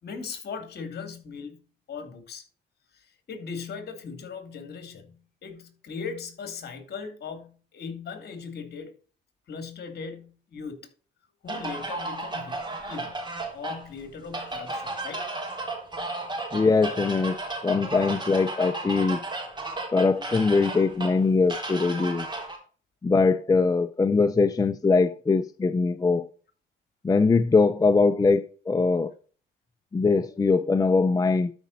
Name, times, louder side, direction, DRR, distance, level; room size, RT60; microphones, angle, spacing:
voice 1, 0.0-1.6 1.9-2.4 2.9-8.9 9.5-10.9 11.4-13.2 13.5-15.3, left 5 dB, 55° left, 2.6 m, -39 dB
sound 1, 11.5-22.6, right 2 dB, 20° right, 3.6 m, -34 dB
voice 2, 16.5-19.2 19.9-22.3 23.0-26.3 27.0-29.1 29.9-31.5, left 4 dB, 20° left, 0.5 m, -22 dB
12.5 x 5.2 x 4.0 m
cardioid pair, 90°, 20 cm